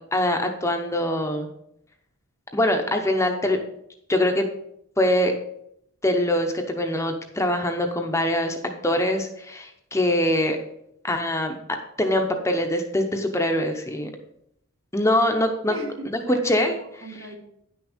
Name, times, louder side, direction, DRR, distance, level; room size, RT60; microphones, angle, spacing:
voice 1, 0.1-1.5 2.5-3.6 4.1-4.5 5.0-5.3 6.0-8.6 8.8-10.6 11.0-14.1 14.9-15.7 16.1-17.0, left 1 dB, 15° left, 4 dB, 0.7 m, -23 dB
voice 2, 15.7-17.4, right 2 dB, 65° right, 3 dB, 1.6 m, -38 dB
9.7 x 6.2 x 5.0 m, 0.75 s
head